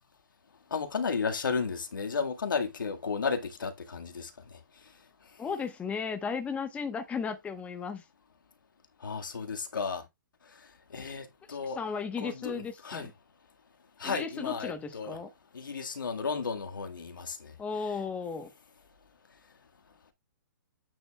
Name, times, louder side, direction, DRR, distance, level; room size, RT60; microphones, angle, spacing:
voice 1, 0.7-4.6 9.0-10.0 10.9-11.8 12.2-13.1 14.0-15.2 15.5-17.5, left 5 dB, 80° left, 1.8 m, -33 dB
voice 2, 5.4-8.0 11.7-13.1 14.0-15.3 17.6-18.5, left 5 dB, 10° left, 1.1 m, -35 dB
9.0 x 6.8 x 2.3 m
hypercardioid pair, 130°, 11 cm